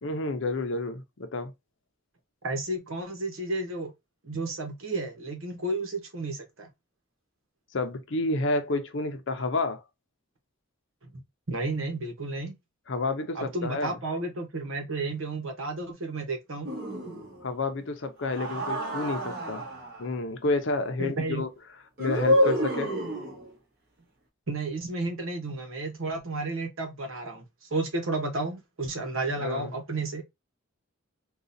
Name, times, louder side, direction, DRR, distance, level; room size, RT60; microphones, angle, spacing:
voice 1, 0.0-1.5 7.7-9.8 12.9-14.0 17.4-19.6 20.0-21.5 22.0-22.9 29.4-29.7, left 2 dB, 65° left, 0.7 m, -30 dB
voice 2, 2.4-3.9 4.2-6.7 11.5-12.6 13.3-16.7 21.0-21.4 24.5-27.4 27.7-30.2, right 2 dB, 80° right, 1.1 m, -32 dB
sound 1, 16.6-17.5 18.2-20.0 22.0-23.5, equal, 50° right, 1.3 m, -28 dB
3.7 x 2.4 x 2.6 m
head